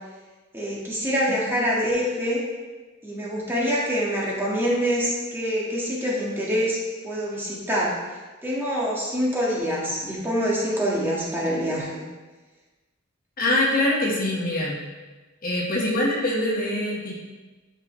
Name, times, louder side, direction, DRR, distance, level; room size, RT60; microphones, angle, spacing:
voice 1, 0.5-2.4 3.0-6.8 7.0-7.9 8.4-12.0, equal, 10° right, -6 dB, 1.7 m, -25 dB
voice 2, 13.4-14.8 15.4-17.2, left 1 dB, 45° left, -4 dB, 1.6 m, -24 dB
11.5 x 5.5 x 3.2 m, 1.3 s
head